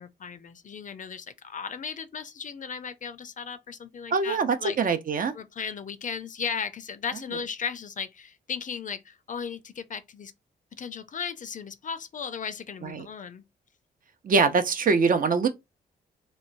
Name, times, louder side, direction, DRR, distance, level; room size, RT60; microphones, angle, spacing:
voice 1, 0.0-4.8 5.3-10.3 10.7-13.4, left 6 dB, 40° left, 0.4 m, -36 dB
voice 2, 4.1-5.3 12.8-13.1 14.2-15.5, right 4 dB, 45° right, 0.5 m, -23 dB
3.0 x 2.1 x 2.5 m
supercardioid pair, 55°, 19 cm